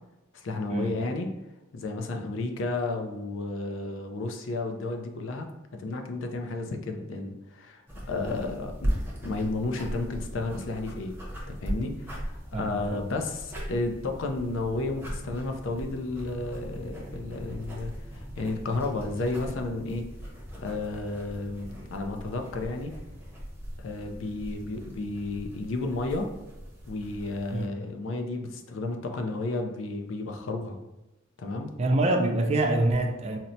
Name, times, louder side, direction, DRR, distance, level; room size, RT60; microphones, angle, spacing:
voice 1, 0.3-1.3 1.7-11.2 11.5-20.1 20.6-22.9 23.8-26.3 26.9-30.8 31.4-31.7, left 2 dB, 70° left, 4 dB, 0.4 m, -32 dB
sound 1, 7.9-27.7, equal, 10° right, 0.7 m, -39 dB
voice 2, 12.5-13.0 27.5-27.7 31.8-33.4, right 2 dB, 35° right, 4 dB, 0.3 m, -25 dB
4.1 x 2.1 x 2.6 m, 0.98 s
head